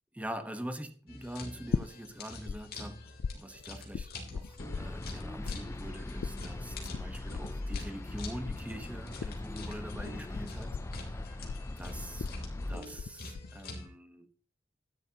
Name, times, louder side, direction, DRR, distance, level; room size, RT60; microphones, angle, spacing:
voice 1, 0.1-3.1 3.3-10.8 11.0-11.5 11.8-12.4 12.7-14.3, equal, 10° right, 1.1 m, -44 dB
sound 1, 1.1-13.9, left 2 dB, 55° left, 3.2 m, -46 dB
sound 2, 1.7-2.6 2.8-5.2 5.5-13.1 13.3-13.9, left 5 dB, 80° left, 0.4 m, -37 dB
sound 3, 4.6-12.8, left 2 dB, 15° left, 0.4 m, -40 dB
12.0 x 11.0 x 2.9 m
head